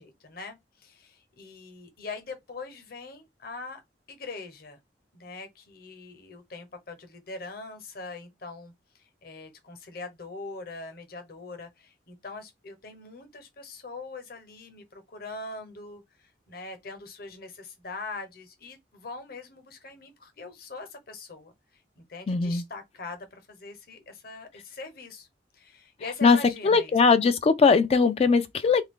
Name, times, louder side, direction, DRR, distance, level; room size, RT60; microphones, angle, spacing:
voice 1, 0.0-3.8 4.1-4.8 5.1-21.5 22.0-25.3 25.5-27.0, left 3 dB, 60° left, 0.9 m, -42 dB
voice 2, 22.3-22.6 26.2-26.4 26.6-28.8, left 4 dB, 35° left, 0.3 m, -20 dB
3.2 x 2.4 x 3.6 m
head